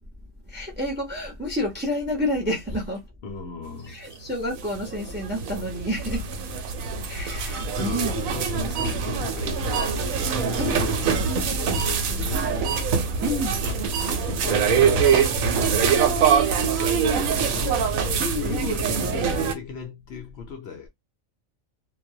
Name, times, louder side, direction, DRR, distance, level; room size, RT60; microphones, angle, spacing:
voice 1, 0.5-3.0 3.8-6.3 7.1-8.1 10.6-10.7 13.2-13.6 17.2-17.8 18.2-18.7, equal, 15° right, 0.4 m, -29 dB
voice 2, 3.2-4.0 7.8-10.0 10.4-12.8 13.6-18.1 18.4-20.9, left 5 dB, 65° left, 0.7 m, -36 dB
sound 1, 4.3-19.5, right 6 dB, 85° right, 1.0 m, -24 dB
2.3 x 2.0 x 2.6 m
omnidirectional pair, 1.4 m